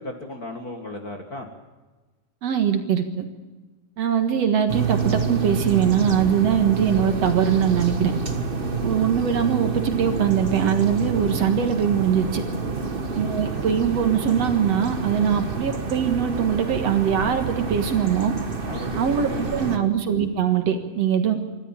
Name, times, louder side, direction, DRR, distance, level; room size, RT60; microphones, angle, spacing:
voice 1, 0.0-1.5 8.5-8.9 12.7-13.0 18.6-19.8, left 2 dB, 35° left, 4 dB, 1.9 m, -37 dB
voice 2, 2.4-3.2 4.0-8.1 8.8-12.4 13.1-18.4 19.0-21.4, right 8 dB, 60° right, 7 dB, 2.6 m, -22 dB
sound 1, 4.7-19.8, right 4 dB, 35° right, 0.8 m, -28 dB
25.5 x 13.0 x 8.9 m, 1.2 s
omnidirectional pair, 3.5 m